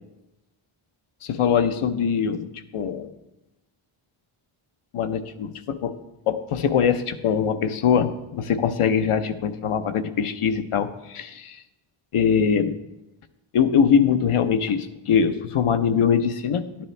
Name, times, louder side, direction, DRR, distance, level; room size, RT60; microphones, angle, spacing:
voice 1, 1.2-3.1 4.9-6.0 6.3-11.6 12.1-12.8 13.5-16.8, left 7 dB, 90° left, 9 dB, 0.8 m, -22 dB
12.5 x 10.0 x 3.3 m, 0.96 s
wide cardioid pair, 125°, 50 cm